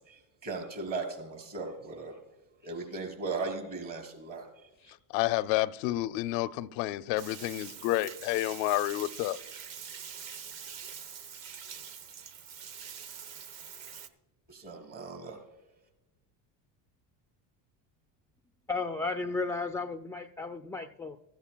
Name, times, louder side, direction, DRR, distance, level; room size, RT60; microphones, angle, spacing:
voice 1, 0.1-2.1 2.6-4.5 14.5-15.4, right 3 dB, 40° right, 4.6 m, -37 dB
voice 2, 5.1-9.4, left 16 dB, 80° left, 0.6 m, -30 dB
Bathtub (filling or washing), 7.2-14.1, right 7 dB, 80° right, 1.1 m, -44 dB
voice 3, 18.7-21.2, left 3 dB, 5° left, 0.4 m, -34 dB
15.5 x 14.0 x 2.3 m
supercardioid pair, 85°, 48 cm